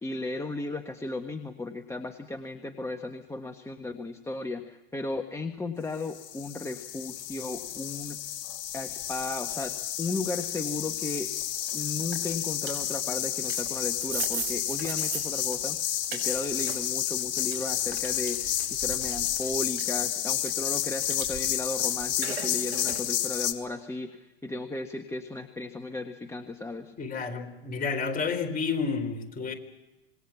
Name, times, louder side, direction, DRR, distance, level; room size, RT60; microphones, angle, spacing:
voice 1, 0.0-8.2 8.7-11.3 11.7-26.9, left 2 dB, 10° left, 5 dB, 1.5 m, -35 dB
sound 1, 6.0-23.5, left 11 dB, 65° left, 2.5 m, -31 dB
sound 2, 10.1-23.2, right 7 dB, 45° right, 7.0 m, -48 dB
sound 3, 13.4-17.0 17.4-19.7 20.2-21.7 22.0-23.1, right 6 dB, 90° right, 3.2 m, -39 dB
voice 2, 27.0-29.5, left 5 dB, 25° left, 5 dB, 4.1 m, -30 dB
26.5 x 21.0 x 7.2 m, 1.0 s
hypercardioid pair, 100°, 31 cm